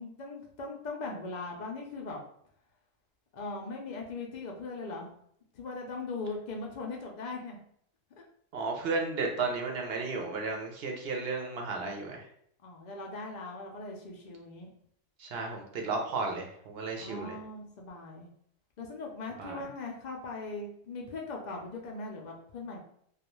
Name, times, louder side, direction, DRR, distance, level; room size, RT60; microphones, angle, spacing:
voice 1, 0.0-2.2 3.3-5.1 5.5-7.6 12.6-14.7 17.0-18.3 18.8-22.8, left 3 dB, 70° left, 0 dB, 0.4 m, -39 dB
voice 2, 8.5-12.2 15.2-17.3 19.4-19.6, right 3 dB, 60° right, 2 dB, 0.7 m, -33 dB
2.3 x 2.2 x 2.9 m, 0.67 s
omnidirectional pair, 1.3 m